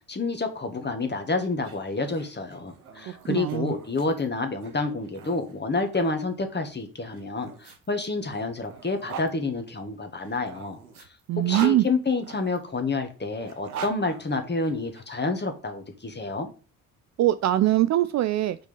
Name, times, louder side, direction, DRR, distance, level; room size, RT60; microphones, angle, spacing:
voice 1, 0.1-11.1 11.5-16.5, left 3 dB, 25° left, 2.0 m, -29 dB
sound 1, 1.5-6.2 7.1-9.3 10.2-12.6 13.4-15.0, right 6 dB, 85° right, 1.0 m, -42 dB
voice 2, 3.1-3.7 11.3-11.8 17.2-18.6, right 13 dB, 40° right, 0.5 m, -22 dB
6.2 x 5.3 x 5.3 m
figure-of-eight pair, 45°, 43 cm